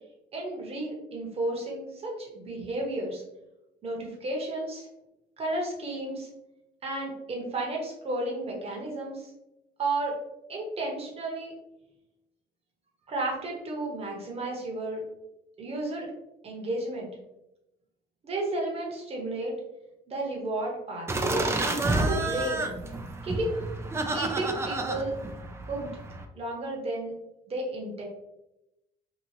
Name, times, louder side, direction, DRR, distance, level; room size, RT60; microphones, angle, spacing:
voice 1, 0.3-3.2 3.8-4.9 5.4-6.3 6.8-9.3 9.8-10.1 10.5-11.5 13.1-15.0 15.6-16.1 16.4-17.1 18.2-19.5 20.1-21.5 22.0-22.7 23.2-23.6 24.1-25.1 25.7-25.9 26.3-27.1 27.5-28.0, right 2 dB, 35° right, -1 dB, 1.0 m, -32 dB
sound 1, 21.1-26.2, right 2 dB, 15° right, 0.3 m, -30 dB
2.9 x 2.4 x 2.7 m, 0.90 s
cardioid pair, 110°, 17 cm